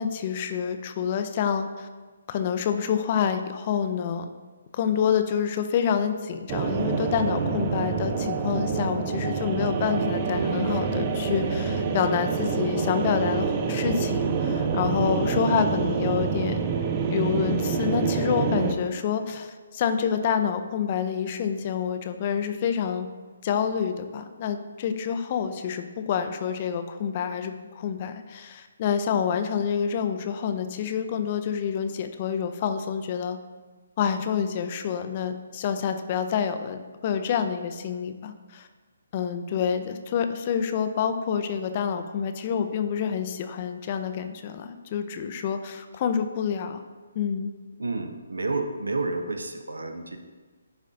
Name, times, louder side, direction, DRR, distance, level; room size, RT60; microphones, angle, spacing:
voice 1, 0.0-1.9 2.3-4.3 4.7-16.7 17.1-23.1 23.4-33.4 34.0-38.7 39.1-46.8 47.2-47.5, left 7 dB, 35° left, 8 dB, 0.4 m, -27 dB
sound 1, 6.5-18.8, right 5 dB, 30° right, 0.5 m, -26 dB
voice 2, 47.8-50.2, right 3 dB, 75° right, 6 dB, 0.6 m, -30 dB
10.5 x 4.1 x 2.5 m, 1.3 s
figure-of-eight pair, 140°, 0 cm